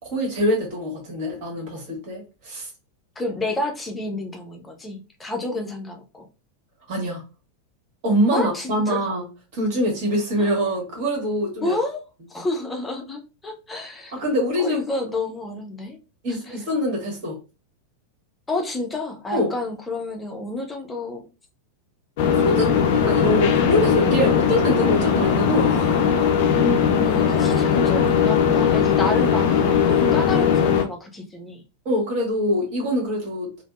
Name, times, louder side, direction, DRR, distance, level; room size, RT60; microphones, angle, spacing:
voice 1, 0.0-2.7 6.9-7.2 8.0-9.2 9.5-11.8 14.1-14.8 16.2-17.4 19.3-19.5 22.3-22.7 22.9-26.4 31.8-33.5, equal, 45° right, -1 dB, 1.4 m, -24 dB
voice 2, 3.2-6.3 8.3-9.0 10.4-10.5 11.6-12.0 12.3-14.1 14.6-16.0 16.3-16.6 18.5-21.2 27.0-31.6, left 2 dB, 10° left, 2 dB, 0.6 m, -30 dB
sound 1, 22.2-30.8, left 7 dB, 50° left, 0.4 m, -19 dB
3.3 x 2.0 x 2.4 m, 0.31 s
figure-of-eight pair, 90°, 0 cm